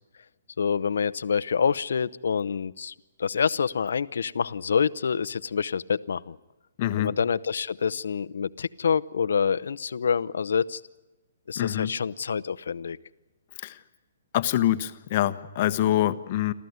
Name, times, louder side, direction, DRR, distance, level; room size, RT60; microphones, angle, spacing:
voice 1, 0.6-6.4 7.0-10.8 11.5-13.0, left 6 dB, 80° left, 16 dB, 0.7 m, -27 dB
voice 2, 6.8-7.1 11.6-11.9 13.6-13.8 14.3-16.5, left 13 dB, 40° left, 11 dB, 1.1 m, -25 dB
28.0 x 14.0 x 9.4 m, 1.1 s
hypercardioid pair, 150°, 0 cm